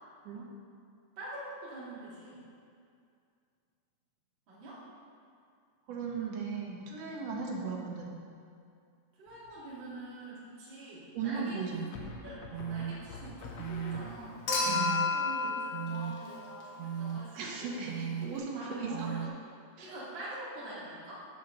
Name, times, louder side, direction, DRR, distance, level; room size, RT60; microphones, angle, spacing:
voice 1, 1.2-2.4 4.5-4.8 7.3-7.5 9.2-11.6 12.0-17.8 18.5-19.3 19.8-21.3, right 1 dB, 40° right, -8 dB, 2.4 m, -45 dB
voice 2, 5.9-8.2 11.1-11.9 14.7-14.9 17.3-19.1 19.8-19.9, right 5 dB, 65° right, -1 dB, 1.8 m, -37 dB
sound 1, 9.3-9.8 11.9-14.6, left 4 dB, 85° left, 1.4 m, -47 dB
sound 2, 11.7-11.9 12.5-12.9 13.6-14.0 14.6-15.1 15.7-16.1 16.8-17.2 17.9-18.3 18.9-19.3, right 8 dB, 85° right, 1.6 m, -36 dB
Human group actions / Chink clink / Liquid, 14.5-16.9 18.4-18.5, left 4 dB, 50° left, 2.1 m, -32 dB
6.8 x 5.6 x 6.6 m, 2.4 s
omnidirectional pair, 3.8 m